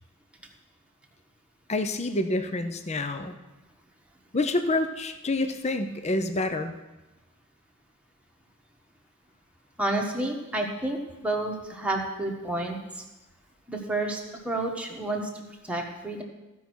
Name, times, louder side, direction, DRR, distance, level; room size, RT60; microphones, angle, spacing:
voice 1, 1.7-3.4 4.3-6.7, left 2 dB, 30° left, 8 dB, 0.7 m, -27 dB
voice 2, 9.8-13.0 13.7-14.2 14.4-16.2, right 2 dB, 5° right, 0 dB, 1.4 m, -30 dB
15.0 x 5.5 x 6.2 m, 1.1 s
head